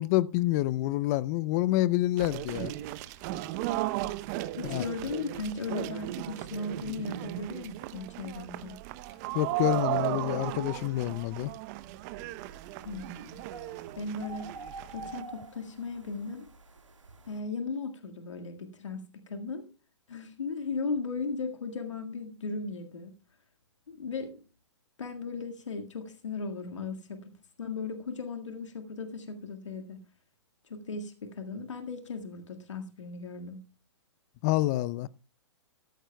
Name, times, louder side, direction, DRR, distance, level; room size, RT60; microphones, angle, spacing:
voice 1, 0.0-2.7 4.6-4.8 9.3-11.5 34.4-35.1, left 16 dB, 35° left, 0.4 m, -27 dB
sound 1, 2.2-15.2, right 16 dB, 35° right, 0.7 m, -36 dB
voice 2, 4.6-8.8 12.8-13.4 13.9-14.5 14.9-16.4 17.3-19.7 20.1-23.1 23.9-24.4 25.0-27.3 27.6-30.0 30.7-33.6, left 4 dB, 80° left, 1.8 m, -37 dB
sound 2, 12.4-17.4, right 3 dB, 90° right, 1.7 m, -48 dB
14.0 x 13.5 x 2.2 m
hypercardioid pair, 125°, 15 cm